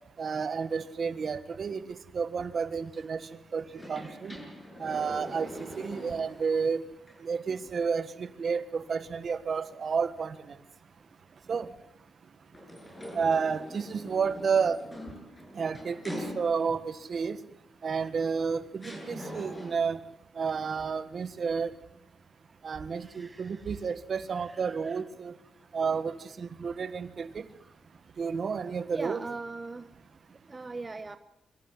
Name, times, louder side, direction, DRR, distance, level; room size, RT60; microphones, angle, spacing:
voice 1, 0.2-1.8 2.1-3.2 3.5-4.3 4.8-6.8 7.2-10.3 11.5-11.7 13.1-14.8 15.5-17.4 17.8-20.0 20.4-21.7 22.6-25.3 25.7-27.5 28.2-29.2, right 5 dB, 50° right, 12 dB, 1.6 m, -31 dB
sound 1, 3.7-6.6 7.1-7.2 12.5-16.9 18.0-18.1 18.8-20.0, equal, 15° left, 7.8 m, -43 dB
voice 2, 3.7-4.1 23.0-23.7 24.3-25.0 27.6-27.7 28.9-29.9 30.5-31.2, right 3 dB, 25° right, 9 dB, 1.1 m, -41 dB
24.5 x 14.5 x 9.7 m, 0.83 s
cardioid pair, 100°, 0 cm